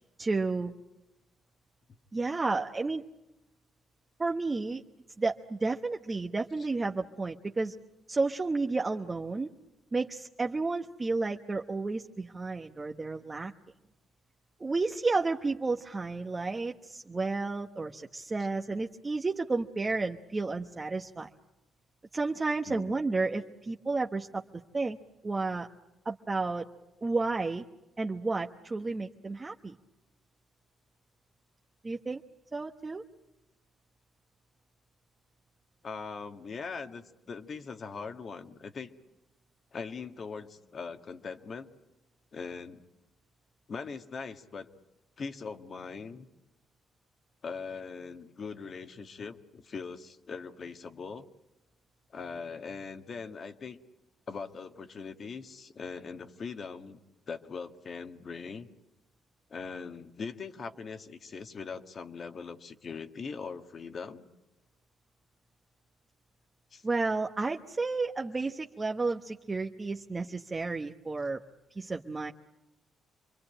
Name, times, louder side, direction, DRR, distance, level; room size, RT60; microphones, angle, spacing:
voice 1, 0.2-0.7 2.1-3.0 4.2-4.8 5.2-7.7 8.1-9.5 9.9-13.5 14.6-21.3 22.1-24.4 24.7-25.0 25.2-25.7 26.0-26.7 27.0-27.7 28.0-29.7 31.8-32.2 32.5-33.0 66.8-71.4 71.8-72.3, right 3 dB, 25° right, 3 dB, 1.1 m, -31 dB
voice 2, 22.7-23.0 35.8-38.9 39.7-41.7 42.3-42.8 43.7-44.7 45.2-46.3 47.4-51.2 52.1-53.8 54.3-57.0 57.3-58.7 59.5-64.3 66.7-66.8, left 5 dB, 45° left, 8 dB, 1.6 m, -41 dB
27.0 x 22.5 x 8.9 m, 0.92 s
cardioid pair, 90°, 0 cm